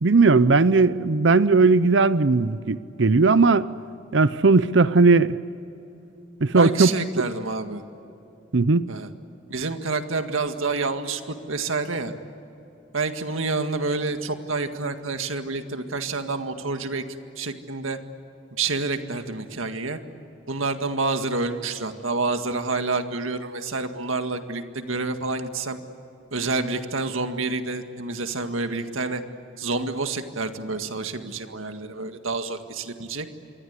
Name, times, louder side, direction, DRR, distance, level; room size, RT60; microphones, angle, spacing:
voice 1, 0.0-3.7 4.1-5.4 6.4-6.9 8.5-8.9, right 3 dB, 65° right, 0.7 m, -18 dB
voice 2, 6.5-7.8 8.9-9.1 9.5-12.1 12.9-17.0 17.4-18.0 18.5-20.0 20.5-25.8 26.3-29.2 29.6-33.3, right 3 dB, 90° right, 1.9 m, -28 dB
28.0 x 23.5 x 8.3 m
head